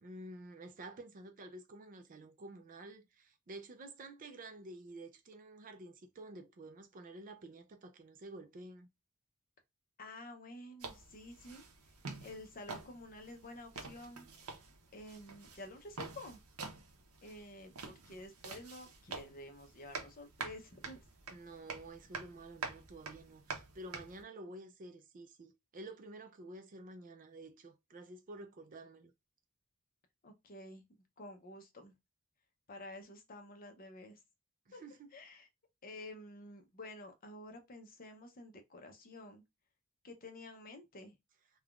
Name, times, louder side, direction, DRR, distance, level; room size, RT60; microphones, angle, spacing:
voice 1, 0.0-8.9 21.3-29.1 34.7-35.1, right 2 dB, 35° right, 0.4 m, -50 dB
voice 2, 10.0-11.6 12.2-14.3 14.9-16.4 17.2-21.0 30.2-30.8 31.2-31.9 32.7-34.2 34.7-34.8 35.1-35.5 35.8-39.4 40.0-41.1, left 1 dB, 40° left, 0.7 m, -50 dB
sound 1, 10.8-24.2, right 4 dB, 75° right, 0.7 m, -48 dB
3.4 x 2.3 x 2.4 m
head